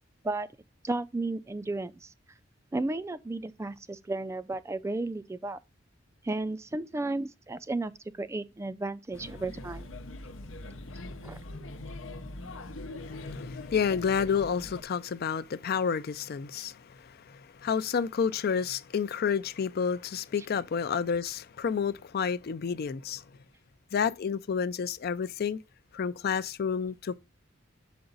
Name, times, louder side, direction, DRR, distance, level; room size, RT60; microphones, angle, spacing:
voice 1, 0.8-2.1 2.7-5.6 6.2-7.9 8.2-9.9 11.2-11.4, right 2 dB, 15° right, 0.3 m, -33 dB
Male speech man speaking / Child speech kid speaking / Chatter, 9.1-14.8, left 2 dB, 90° left, 0.8 m, -42 dB
voice 2, 13.0-23.2 23.9-25.6 25.9-27.2, left 6 dB, 55° left, 0.4 m, -30 dB
6.9 x 5.1 x 3.9 m
head